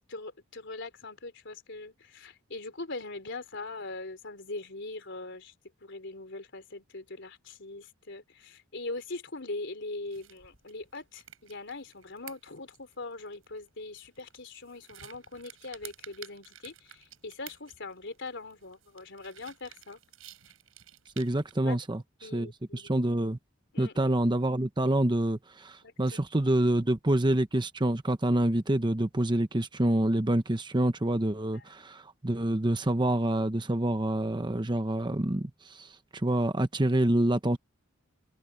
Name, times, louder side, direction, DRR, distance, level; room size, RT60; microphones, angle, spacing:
voice 1, 0.1-5.5 5.8-20.0 21.6-21.8 22.2-22.9 23.7-23.9 25.8-26.5 31.5-31.6, left 2 dB, 60° left, 4.0 m, -41 dB
sound 1, 10.0-21.6, right 11 dB, 75° right, 6.0 m, -53 dB
voice 2, 21.2-22.0 22.3-23.4 23.8-37.6, right 1 dB, 20° right, 0.9 m, -27 dB
head